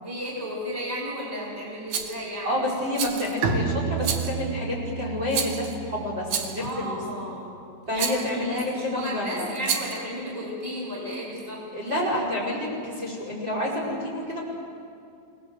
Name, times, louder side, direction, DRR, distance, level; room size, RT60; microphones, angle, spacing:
voice 1, 0.0-2.6 6.6-7.6 7.9-11.9, equal, 10° left, -6 dB, 3.7 m, -34 dB
Rattle, 1.9-2.2 3.0-3.4 4.0-4.4 5.3-5.8 6.3-6.7 8.0-8.3 9.6-10.0, right 7 dB, 65° right, 2.6 m, -29 dB
voice 2, 2.4-7.0 7.9-9.5 11.7-14.4, left 1 dB, 25° right, 0 dB, 5.5 m, -29 dB
Bowed string instrument, 3.4-6.9, right 5 dB, 90° right, 4.2 m, -30 dB
27.5 x 20.0 x 7.9 m, 2.4 s
omnidirectional pair, 5.5 m